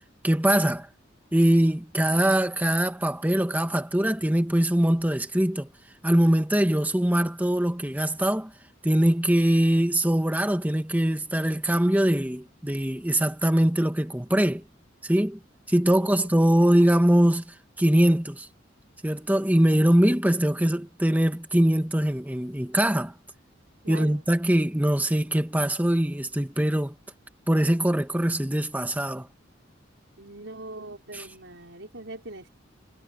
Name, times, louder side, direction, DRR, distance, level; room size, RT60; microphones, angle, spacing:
voice 1, 0.2-0.9 1.3-5.7 6.0-8.5 8.8-14.6 15.0-15.4 15.7-18.5 19.0-23.1 23.9-26.9 27.5-29.3 31.1-31.3, right 1 dB, 10° right, 1.3 m, -22 dB
voice 2, 15.9-16.7 23.8-24.2 30.2-32.5, right 2 dB, 75° right, 5.1 m, -42 dB
head